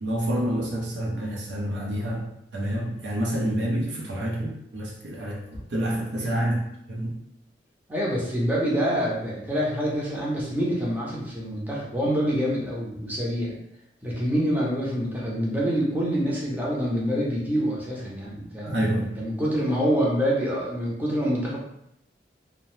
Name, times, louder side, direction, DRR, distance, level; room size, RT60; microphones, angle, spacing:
voice 1, 0.0-7.2 18.6-19.2, right 1 dB, 70° right, -2 dB, 0.5 m, -28 dB
voice 2, 7.9-13.5 14.0-18.8 19.2-21.6, equal, 10° right, -5 dB, 0.6 m, -26 dB
2.6 x 2.0 x 3.1 m, 0.77 s
head